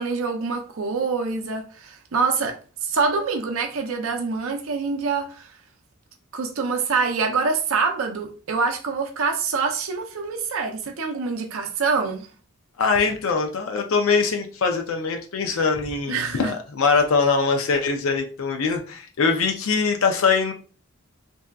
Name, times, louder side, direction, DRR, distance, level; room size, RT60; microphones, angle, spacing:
voice 1, 0.0-2.6 2.8-5.5 6.3-12.3 16.1-16.5, right 4 dB, 65° right, 0.5 m, -25 dB
voice 2, 12.8-20.5, left 4 dB, 65° left, 0.5 m, -22 dB
3.4 x 2.7 x 2.3 m
head